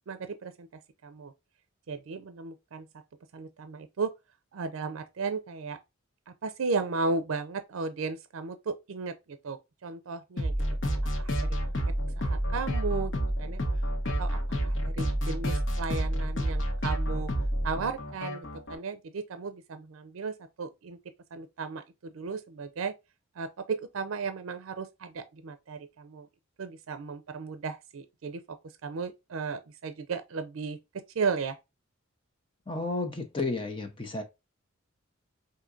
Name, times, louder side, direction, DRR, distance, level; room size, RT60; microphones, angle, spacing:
voice 1, 0.1-0.7 1.0-1.3 1.9-2.9 3.3-4.1 4.5-5.8 6.4-10.5 11.2-11.5 12.2-13.1 13.4-13.6 14.2-14.4 14.6-17.3 17.6-21.0 21.3-22.9 23.4-26.3 26.6-30.8 31.2-31.6, right 4 dB, 80° right, 0.4 m, -35 dB
sound 1, 10.4-18.8, equal, 65° left, 1.1 m, -29 dB
voice 2, 32.7-34.2, left 3 dB, 25° left, 0.6 m, -32 dB
5.0 x 2.6 x 2.4 m
head